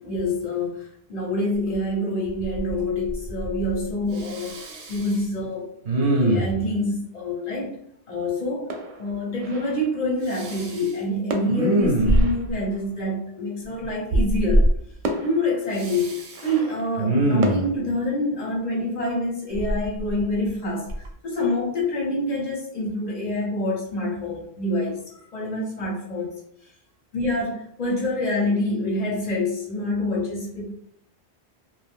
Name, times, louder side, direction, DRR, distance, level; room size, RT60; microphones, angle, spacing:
voice 1, 0.0-4.6 4.9-5.7 5.9-7.8 8.1-8.6 9.0-14.7 15.2-25.0 25.3-26.4 27.1-30.8, left 1 dB, 45° left, -3 dB, 0.8 m, -26 dB
Respiratory sounds, 1.7-1.8 2.2-2.8 3.0-3.8 4.2-5.2 5.8-6.7 10.3-10.9 11.5-12.5 14.1-14.7 15.7-16.4 17.0-17.7 19.5-20.5 20.9-21.1, right 1 dB, 90° right, 0.9 m, -23 dB
sound 1, 8.7-10.2 11.3-13.2 14.4-14.5 15.0-17.7, right 2 dB, 60° right, 0.6 m, -35 dB
2.5 x 2.2 x 3.5 m, 0.71 s
omnidirectional pair, 1.1 m